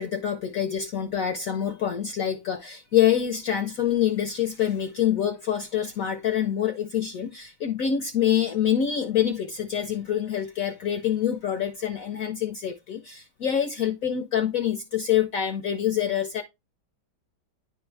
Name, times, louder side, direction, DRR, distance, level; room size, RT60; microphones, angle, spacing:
voice 1, 0.0-16.4, left 10 dB, 75° left, 0.8 m, -26 dB
10.0 x 3.5 x 3.2 m
omnidirectional pair, 2.2 m